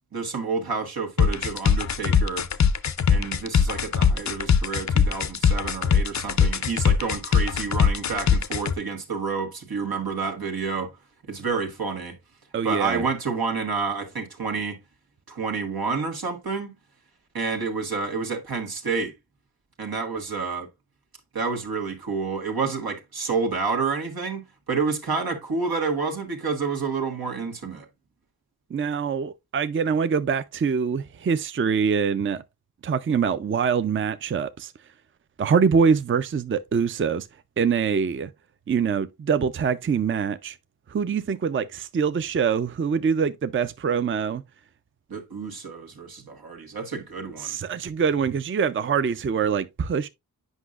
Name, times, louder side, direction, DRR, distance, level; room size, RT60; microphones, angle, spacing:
voice 1, 0.1-2.5 3.1-10.9 11.3-12.2 12.6-14.8 15.3-16.7 17.3-19.1 19.8-20.7 21.3-24.4 24.7-27.9 45.1-47.6, right 4 dB, 90° right, 1.4 m, -29 dB
sound 1, 1.2-8.7, left 7 dB, 50° left, 0.5 m, -21 dB
voice 2, 12.5-13.0 28.7-32.4 32.8-34.7 35.4-37.3 37.6-38.3 38.7-40.6 40.9-44.4 47.4-50.1, right 6 dB, 35° right, 0.4 m, -24 dB
8.1 x 5.3 x 2.4 m
wide cardioid pair, 65°, 36 cm